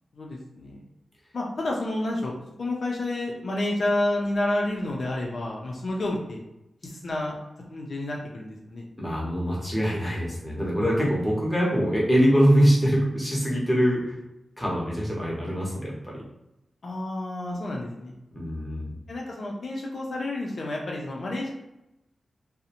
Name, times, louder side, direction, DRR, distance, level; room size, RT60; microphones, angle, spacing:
voice 1, 0.1-0.8 1.3-6.4 6.8-7.3 7.7-8.8 10.8-11.1 16.8-18.2 19.1-21.5, left 1 dB, 55° left, -2 dB, 0.4 m, -30 dB
voice 2, 9.0-14.2 14.6-16.2 18.3-18.9, equal, 5° left, -5 dB, 0.7 m, -23 dB
2.5 x 2.0 x 2.8 m, 0.89 s
wide cardioid pair, 145°, 0 cm